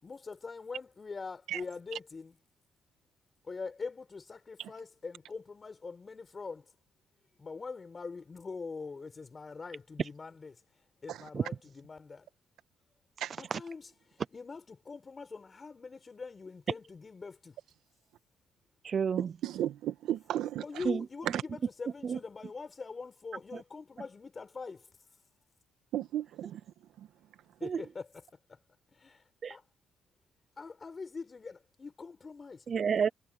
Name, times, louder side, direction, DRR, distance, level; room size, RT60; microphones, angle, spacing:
voice 1, 0.0-2.4 3.5-6.6 7.4-10.6 11.0-12.3 13.4-13.9 14.3-17.5 20.6-24.8 27.6-28.2 29.5-29.6 30.6-32.6, left 4 dB, 35° left, 4.9 m, -43 dB
voice 2, 18.8-19.3 20.8-21.0 22.0-22.2 23.5-23.6 27.6-27.8 29.4-29.6 32.7-33.1, right 6 dB, 50° right, 0.6 m, -30 dB
voice 3, 19.4-20.8 21.3-21.4 25.9-26.6 27.0-27.1, right 12 dB, 85° right, 1.7 m, -35 dB
cardioid pair, 90°, 0 cm